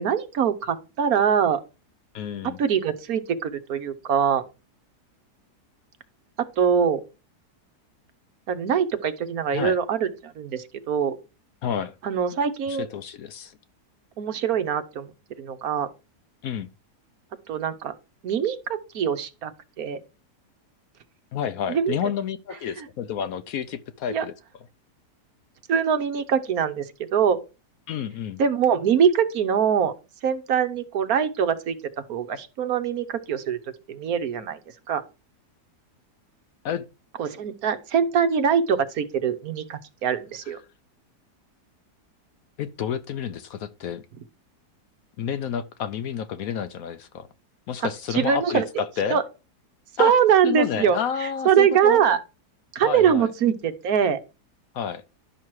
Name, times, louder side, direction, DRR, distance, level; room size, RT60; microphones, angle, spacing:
voice 1, 0.0-1.6 2.6-4.4 6.6-7.0 8.5-11.2 12.0-12.9 14.2-15.1 15.4-15.9 17.5-17.9 18.2-19.5 19.8-20.0 21.7-21.9 24.1-24.2 25.7-26.8 27.1-27.4 28.4-29.9 30.2-31.8 32.1-33.6 33.9-34.6 34.9-35.0 37.2-40.6 48.1-48.6 49.1-49.2 50.0-51.0 51.4-52.2 52.7-54.2, right 7 dB, 65° right, 1.3 m, -23 dB
voice 2, 2.1-2.6 9.5-9.8 11.6-11.9 12.7-13.6 16.4-16.7 21.3-24.3 27.9-28.4 36.6-36.9 42.6-44.0 45.2-47.3 47.7-49.2 50.0-50.1 50.4-52.0 52.8-53.3 54.7-55.0, left 8 dB, 65° left, 1.0 m, -30 dB
11.5 x 6.0 x 4.7 m
omnidirectional pair, 1.7 m